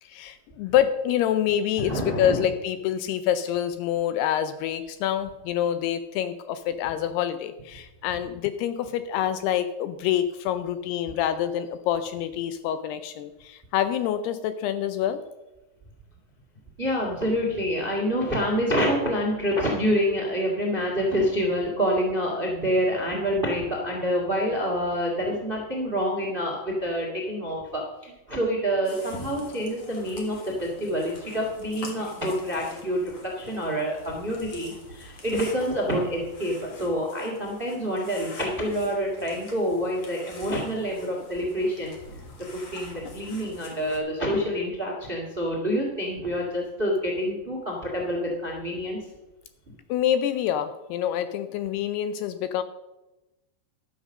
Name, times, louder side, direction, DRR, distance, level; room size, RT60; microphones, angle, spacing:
voice 1, 0.0-15.2 49.9-52.6, left 10 dB, 80° left, 11 dB, 2.4 m, -26 dB
voice 2, 1.8-2.4 16.8-42.2 42.5-49.0, equal, 35° right, -1 dB, 0.8 m, -27 dB
sound 1, 28.8-44.0, left 2 dB, 50° left, 1.7 m, -46 dB
12.0 x 7.4 x 6.4 m, 1.0 s
omnidirectional pair, 5.0 m